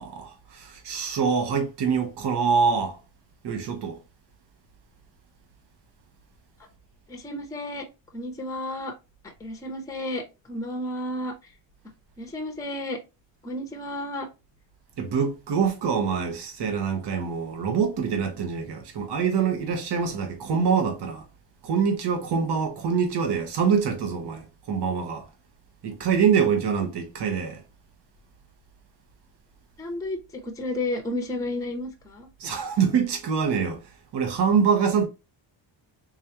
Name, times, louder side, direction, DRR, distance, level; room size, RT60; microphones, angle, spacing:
voice 1, 0.0-3.0 3.4-4.0 15.0-21.2 21.6-25.3 25.8-27.6 32.4-33.8 34.1-35.1, right 6 dB, 65° right, 1.2 m, -25 dB
voice 2, 7.1-7.8 8.1-8.9 9.4-11.3 12.2-13.0 13.4-14.3 29.8-32.3, left 1 dB, 10° left, 0.7 m, -32 dB
3.6 x 3.1 x 2.9 m
cardioid pair, 140°, 45 cm